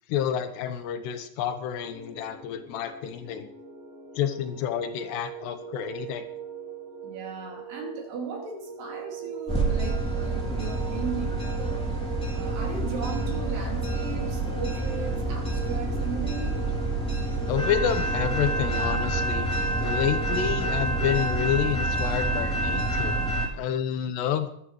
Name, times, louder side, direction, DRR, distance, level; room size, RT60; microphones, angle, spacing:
voice 1, 0.1-3.5 4.2-6.3 17.5-19.5 19.8-23.2 23.5-24.5, left 9 dB, 75° left, 8 dB, 2.6 m, -29 dB
sound 1, 1.9-21.3, right 8 dB, 25° right, 1.3 m, -40 dB
voice 2, 7.0-11.9 12.3-16.6 21.0-21.1, right 5 dB, 55° right, 0 dB, 4.3 m, -37 dB
sound 2, 9.5-23.5, right 2 dB, 5° left, 0.8 m, -28 dB
21.5 x 11.5 x 3.2 m, 0.70 s
omnidirectional pair, 6.0 m